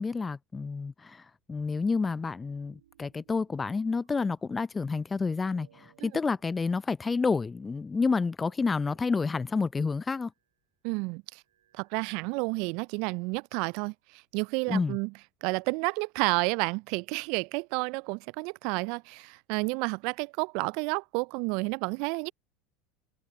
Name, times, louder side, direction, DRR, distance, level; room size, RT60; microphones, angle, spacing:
voice 1, 0.0-10.3 14.7-15.0, left 4 dB, 20° left, 0.5 m, -29 dB
sound 1, 2.2-5.2 5.6-7.4 7.6-7.8 8.1-8.2 8.5-8.7 8.9-10.7 11.4-13.0 13.7-14.6, right 11 dB, 80° right, 7.1 m, -67 dB
voice 2, 10.8-11.4 11.7-13.9 14.3-15.1 15.4-22.3, right 30 dB, 65° right, 0.3 m, -30 dB
open air
hypercardioid pair, 80°, 0 cm